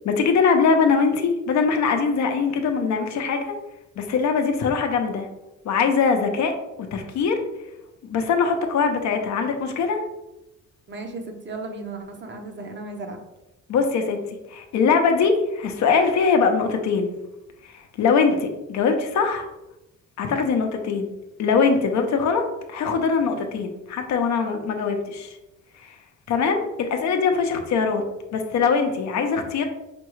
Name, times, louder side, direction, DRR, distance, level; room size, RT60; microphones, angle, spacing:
voice 1, 0.0-3.5 4.0-5.3 5.6-6.5 6.9-7.4 8.1-10.0 13.7-14.2 14.5-17.1 17.6-19.5 20.2-21.1 21.4-25.4 25.8-25.9 26.3-28.0 28.3-29.6, left 5 dB, 65° left, 5 dB, 0.6 m, -22 dB
voice 2, 10.9-13.2, right 2 dB, 40° right, 4 dB, 0.7 m, -35 dB
5.1 x 2.3 x 3.1 m, 0.94 s
cardioid pair, 90°, 30 cm